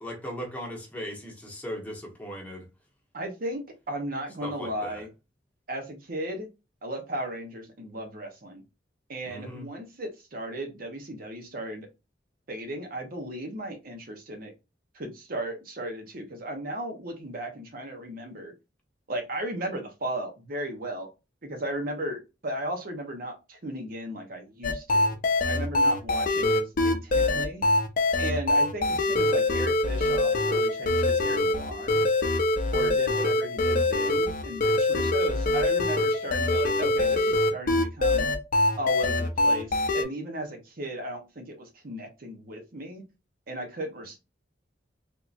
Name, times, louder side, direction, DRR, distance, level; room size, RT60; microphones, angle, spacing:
voice 1, 0.0-2.7 4.4-5.0 9.2-9.7, equal, 10° left, 1.0 m, -38 dB
voice 2, 3.1-5.1 5.7-6.5 6.8-8.6 9.1-11.9 12.5-14.5 14.9-18.5 19.1-21.1 21.4-25.2 25.5-27.6 28.2-32.0 32.7-38.3 38.8-43.0 43.5-44.2, right 1 dB, 55° right, 0.8 m, -36 dB
sound 1, 24.6-40.0, left 2 dB, 50° left, 0.5 m, -24 dB
3.6 x 2.7 x 2.4 m
head